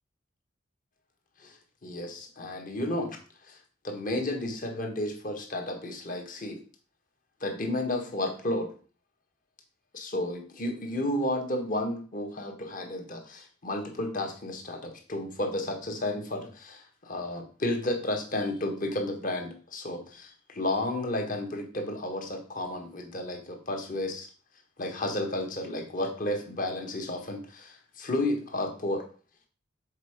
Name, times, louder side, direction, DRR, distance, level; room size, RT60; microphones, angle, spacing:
voice 1, 1.8-3.2 3.5-3.6 3.8-6.6 7.4-8.7 9.9-24.3 24.8-29.0, left 1 dB, 45° left, 3 dB, 1.5 m, -32 dB
6.5 x 4.4 x 5.0 m, 0.39 s
head